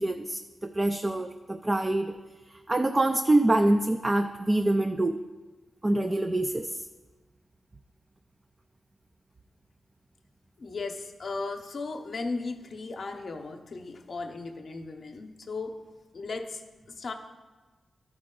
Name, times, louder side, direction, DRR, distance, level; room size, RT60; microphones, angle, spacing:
voice 1, 0.0-2.2 2.5-5.2 5.8-6.9, right 1 dB, 30° right, 6 dB, 0.4 m, -25 dB
voice 2, 10.6-15.8 16.1-16.6 16.9-17.1, left 3 dB, 65° left, 4 dB, 0.7 m, -36 dB
12.5 x 4.8 x 3.7 m, 1.3 s
cardioid pair, 55°, 0 cm